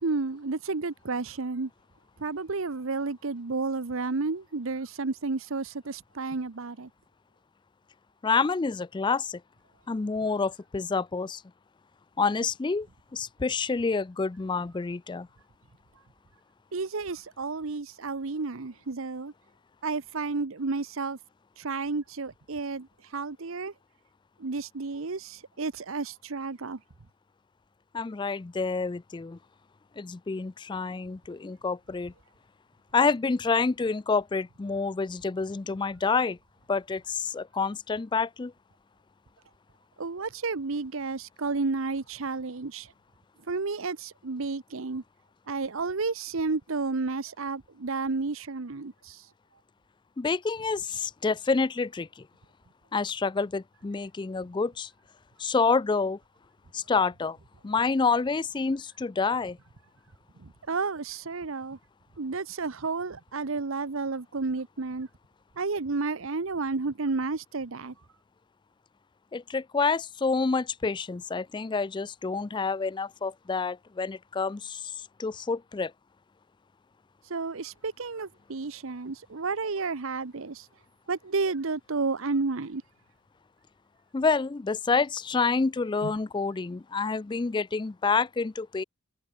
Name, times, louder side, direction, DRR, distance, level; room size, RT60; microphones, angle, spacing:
voice 1, 0.0-1.7 2.2-6.9 16.7-19.3 19.8-21.2 21.6-22.9 23.1-23.7 24.4-26.8 40.0-42.9 43.5-45.0 45.5-49.2 60.4-61.8 62.2-65.1 65.6-67.9 77.3-80.7 81.1-82.8 86.0-86.1, right 3 dB, 70° right, 0.9 m, -31 dB
voice 2, 8.2-9.4 9.9-11.4 12.2-12.9 13.1-15.3 27.9-29.4 30.0-32.1 32.9-36.4 36.7-38.5 50.2-52.2 52.9-54.9 55.4-56.2 56.7-57.4 57.6-59.6 69.3-74.9 75.2-75.9 84.1-88.8, left 4 dB, 20° left, 0.3 m, -28 dB
head